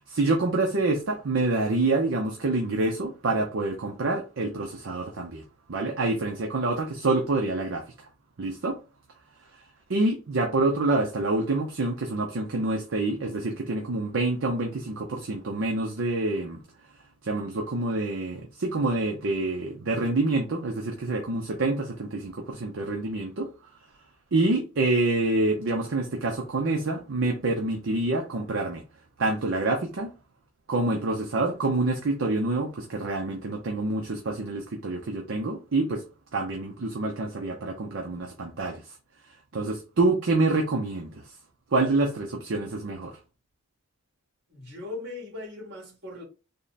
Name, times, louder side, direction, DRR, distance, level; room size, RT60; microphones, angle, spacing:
voice 1, 0.0-5.4 5.7-8.1 8.4-8.8 9.9-16.6 17.2-23.5 24.3-28.8 29.2-30.1 30.7-36.0 36.3-38.9 39.5-41.3 41.7-43.2, right 2 dB, 70° right, 0.6 m, -27 dB
voice 2, 44.5-46.2, left 2 dB, 55° right, 2.0 m, -39 dB
3.5 x 2.1 x 3.9 m
head